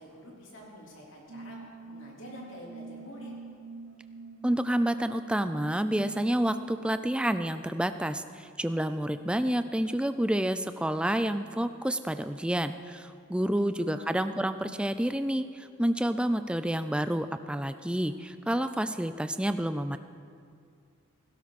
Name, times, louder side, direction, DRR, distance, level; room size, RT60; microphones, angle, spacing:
voice 1, 0.0-3.3 13.4-14.2, left 1 dB, 75° left, -3 dB, 3.8 m, -47 dB
sound 1, 1.3-8.3, right 4 dB, 75° right, 1.1 m, -45 dB
voice 2, 4.4-20.0, right 1 dB, 5° right, 10 dB, 0.4 m, -29 dB
17.0 x 16.0 x 4.2 m, 2.3 s
head